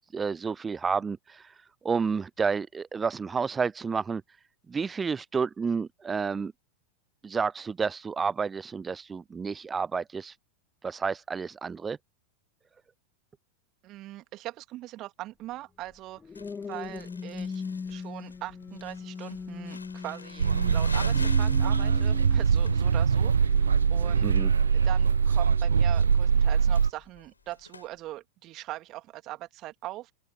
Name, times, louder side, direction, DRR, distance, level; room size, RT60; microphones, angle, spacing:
voice 1, 0.1-4.2 4.7-6.5 7.2-10.4 10.8-12.0 24.2-24.5, right 5 dB, 15° right, 0.5 m, -30 dB
voice 2, 13.8-16.2 16.7-17.6 17.9-24.3 24.7-30.1, right 16 dB, 35° right, 2.6 m, -41 dB
sound 1, 15.9-26.4 27.0-27.3, left 5 dB, 15° left, 0.8 m, -41 dB
Crumpling crinkling, 16.3-27.9, left 4 dB, 80° left, 4.1 m, -47 dB
sound 2, 20.4-26.9, right 6 dB, 70° right, 0.4 m, -23 dB
open air
figure-of-eight pair, 90°, 0 cm